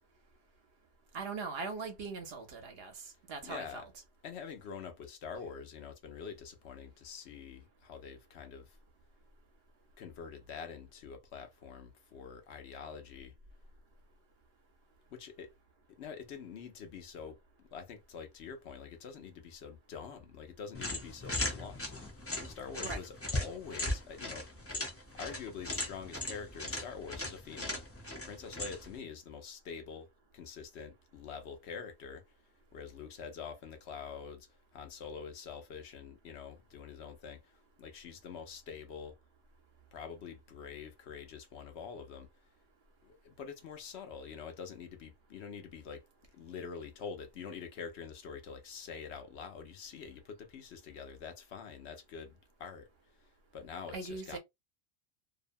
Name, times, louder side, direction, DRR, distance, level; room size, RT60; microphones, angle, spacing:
voice 1, 1.1-3.9 22.8-23.0 53.9-54.4, right 4 dB, 65° right, 1.0 m, -41 dB
voice 2, 3.4-3.9 4.2-8.8 10.0-13.3 15.1-15.5 16.0-21.9 22.4-24.8 25.2-27.8 28.2-30.1 30.3-32.2 32.7-34.5 34.7-39.2 39.9-42.3 43.0-46.0 46.3-52.9 53.5-54.4, left 6 dB, 75° left, 0.9 m, -46 dB
sound 1, 20.7-29.0, left 1 dB, 15° left, 0.6 m, -38 dB
2.7 x 2.2 x 2.5 m
omnidirectional pair, 1.1 m